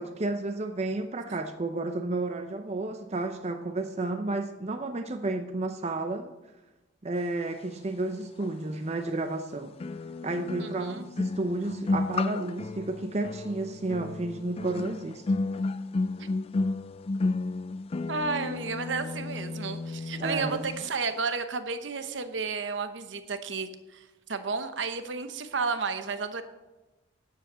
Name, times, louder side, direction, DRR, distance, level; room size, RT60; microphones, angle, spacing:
voice 1, 0.0-6.3 7.0-9.7 10.2-15.2 20.2-20.6, right 2 dB, 35° right, 6 dB, 0.6 m, -32 dB
sound 1, 8.4-8.5 9.8-20.9 21.1-21.4, left 3 dB, 30° left, 0.3 m, -32 dB
voice 2, 10.6-11.0 16.2-16.3 18.1-26.4, right 4 dB, 75° right, 9 dB, 0.9 m, -32 dB
9.6 x 7.8 x 7.4 m, 1.1 s
head